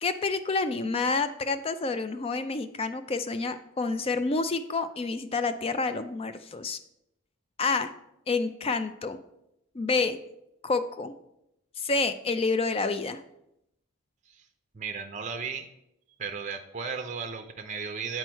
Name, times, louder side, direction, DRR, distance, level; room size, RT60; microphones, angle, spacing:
voice 1, 0.0-6.8 7.6-7.9 8.3-9.2 9.7-10.2 10.6-11.1 11.8-13.2, left 3 dB, 30° left, 11 dB, 0.4 m, -28 dB
voice 2, 14.7-15.7 16.2-18.2, right 5 dB, 35° right, 6 dB, 0.5 m, -35 dB
7.7 x 4.5 x 4.4 m, 0.82 s
head